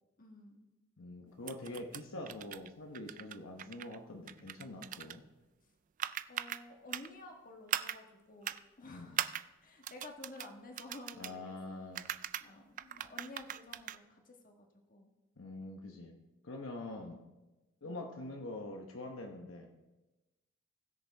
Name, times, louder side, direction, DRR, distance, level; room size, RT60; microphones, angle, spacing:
voice 1, 0.2-0.7 6.3-9.2 9.6-11.8 12.4-15.1 17.8-18.0, left 2 dB, 40° left, 2 dB, 1.5 m, -52 dB
voice 2, 1.0-5.2 8.9-9.2 11.2-12.1 15.4-17.2 17.8-19.7, left 2 dB, 70° left, 2 dB, 1.0 m, -45 dB
sound 1, 1.5-2.0 2.3-2.7 2.9-4.0 4.3-5.2 6.0-6.6 6.9-7.1 7.7-8.0 8.4-8.6 9.2-9.4 9.8-10.5 10.8-11.3 12.0-12.5 12.8-14.0, right 11 dB, 40° right, 0.3 m, -39 dB
20.0 x 6.7 x 3.4 m, 1.1 s
head